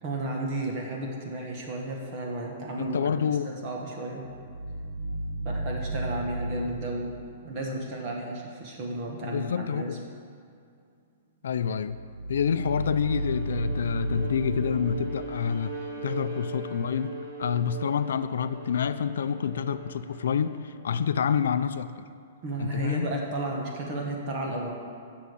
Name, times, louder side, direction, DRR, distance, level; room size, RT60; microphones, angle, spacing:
voice 1, 0.0-3.1 3.4-4.2 5.4-7.1 7.4-10.1 22.4-24.7, right 2 dB, 25° right, -1 dB, 1.5 m, -33 dB
voice 2, 2.8-3.5 9.2-10.0 11.4-12.0 12.3-21.9 22.6-23.2, left 7 dB, 85° left, 12 dB, 0.4 m, -28 dB
sound 1, 4.2-9.3 11.8-15.1, right 2 dB, 85° right, 2.4 m, -34 dB
Bowed string instrument, 12.4-20.8, right 2 dB, 60° right, 2.5 m, -40 dB
8.4 x 6.4 x 7.9 m, 2.4 s
hypercardioid pair, 175°, 0 cm